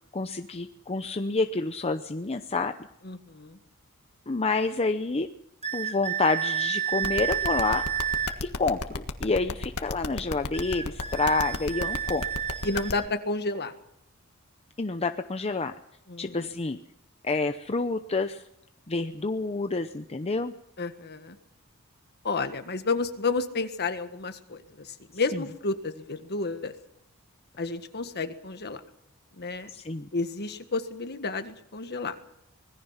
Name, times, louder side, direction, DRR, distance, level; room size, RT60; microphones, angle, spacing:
voice 1, 0.0-2.7 4.3-5.3 5.7-7.8 8.6-12.2 14.8-15.7 16.2-16.8 17.2-18.4 18.9-20.5 29.7-30.1, left 3 dB, 30° left, 8 dB, 0.7 m, -28 dB
voice 2, 3.0-3.6 12.6-13.7 16.1-16.6 20.8-21.4 22.2-26.7 27.6-28.8 29.3-29.7 30.1-32.2, left 3 dB, 50° left, 8 dB, 1.6 m, -31 dB
sound 1, 5.6-8.4 10.5-13.1, right 9 dB, 30° right, 1.5 m, -30 dB
sound 2, 7.0-12.9, left 3 dB, 85° left, 1.6 m, -32 dB
25.5 x 20.5 x 5.8 m, 0.80 s
head